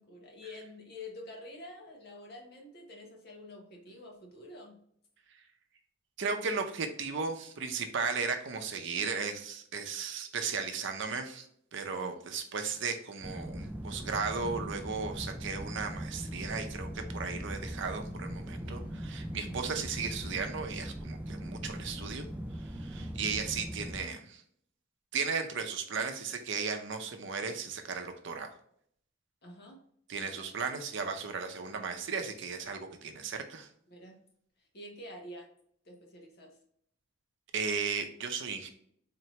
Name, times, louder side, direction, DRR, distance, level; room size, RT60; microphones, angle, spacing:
voice 1, 0.0-4.8 11.9-12.3 18.6-19.0 19.4-19.7 22.9-23.2 29.4-29.8 30.2-30.5 33.9-34.2 34.6-35.5 35.8-36.6, left 1 dB, 55° left, 1 dB, 1.1 m, -48 dB
voice 2, 6.2-18.8 19.1-22.3 22.6-24.4 25.1-28.5 30.1-33.7 37.5-38.7, right 5 dB, 65° right, 5 dB, 0.6 m, -35 dB
sound 1, 13.2-24.0, equal, 10° right, 0.3 m, -40 dB
4.3 x 2.9 x 3.1 m, 0.67 s
head